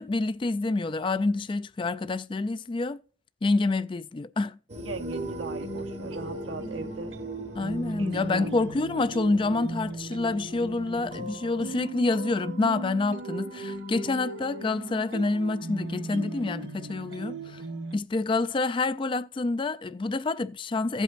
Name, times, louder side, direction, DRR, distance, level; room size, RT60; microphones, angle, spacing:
voice 1, 0.0-3.0 3.4-4.6 7.5-17.6 17.9-21.0, left 3 dB, 25° left, 0.3 m, -27 dB
sound 1, 4.7-11.8, left 1 dB, 35° right, 0.8 m, -43 dB
voice 2, 4.8-7.1 8.0-8.5, right 3 dB, 85° right, 1.1 m, -38 dB
sound 2, 5.0-18.0, right 2 dB, 60° right, 1.2 m, -37 dB
15.5 x 8.2 x 2.5 m
head